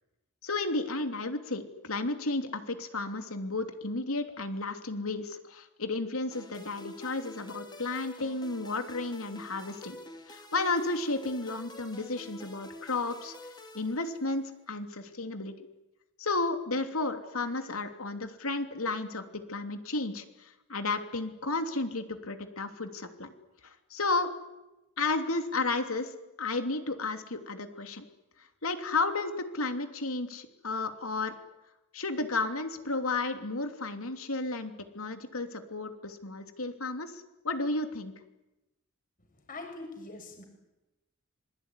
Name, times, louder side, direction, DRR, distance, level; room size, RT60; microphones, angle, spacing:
voice 1, 0.4-10.0 10.3-13.3 13.7-15.5 16.2-19.2 19.5-23.3 23.6-24.3 25.0-26.1 26.4-28.0 28.6-31.3 31.9-38.1, left 3 dB, 90° left, 7 dB, 3.1 m, -33 dB
sound 1, 6.3-14.6, left 1 dB, 20° left, 3.2 m, -48 dB
voice 2, 39.5-40.4, left 2 dB, 40° left, 5 dB, 6.8 m, -42 dB
26.5 x 22.0 x 9.9 m, 0.98 s
head